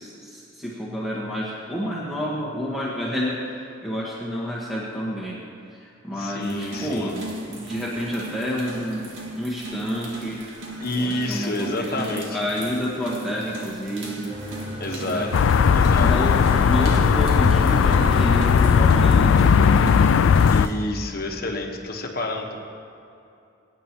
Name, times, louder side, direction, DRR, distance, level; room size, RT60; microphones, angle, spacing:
voice 1, 0.0-5.4 5.7-7.2 7.5-9.1 9.3-10.4 10.9-14.4 15.1-15.3 16.0-20.0, equal, ahead, -6 dB, 1.4 m, -29 dB
voice 2, 6.2-7.1 10.8-12.4 13.2-13.3 14.8-15.3 15.7-16.1 20.5-22.6, left 2 dB, 50° left, 2 dB, 1.2 m, -29 dB
sound 1, 6.4-20.7, right 1 dB, 70° right, 1.9 m, -37 dB
Mechanical fan, 14.3-20.2, right 1 dB, 25° right, 2.3 m, -36 dB
sound 2, 15.3-20.7, left 6 dB, 75° left, 0.4 m, -17 dB
22.5 x 9.4 x 3.0 m, 2.7 s
head